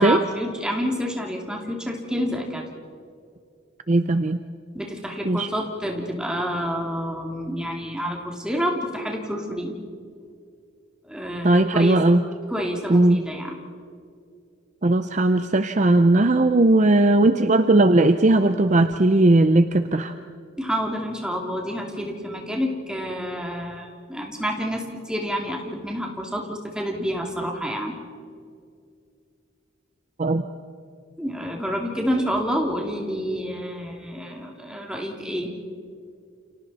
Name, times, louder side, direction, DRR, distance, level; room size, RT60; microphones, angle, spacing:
voice 1, 0.0-2.6 4.7-9.8 11.1-12.0 12.5-13.6 20.6-28.0 31.2-35.5, equal, 5° right, 0 dB, 2.7 m, -28 dB
voice 2, 3.9-4.4 5.3-5.5 11.4-12.2 12.9-13.2 14.8-20.1 30.2-30.4, right 2 dB, 40° right, 9 dB, 0.6 m, -18 dB
29.5 x 29.0 x 4.2 m, 2.3 s
head